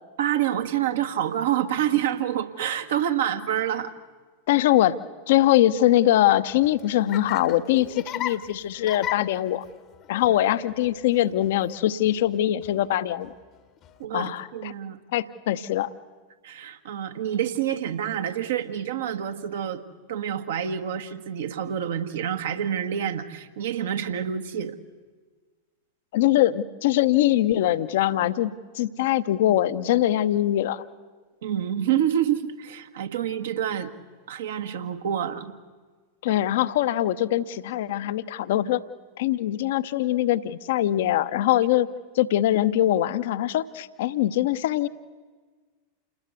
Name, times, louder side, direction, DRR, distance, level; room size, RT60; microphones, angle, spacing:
voice 1, 0.2-3.9 14.0-15.0 16.4-19.8 20.1-24.8 31.4-33.9 34.3-35.5, right 10 dB, 60° right, 8 dB, 1.4 m, -27 dB
voice 2, 4.5-5.0 5.3-9.6 10.1-13.3 14.1-14.7 15.1-15.9 26.1-30.8 36.2-38.8 39.2-41.9 42.1-44.9, left 13 dB, 55° left, 14 dB, 0.8 m, -22 dB
Laughter, 6.5-14.0, left 12 dB, 35° left, 1.1 m, -39 dB
28.5 x 20.0 x 8.2 m, 1.4 s
figure-of-eight pair, 90°, 0 cm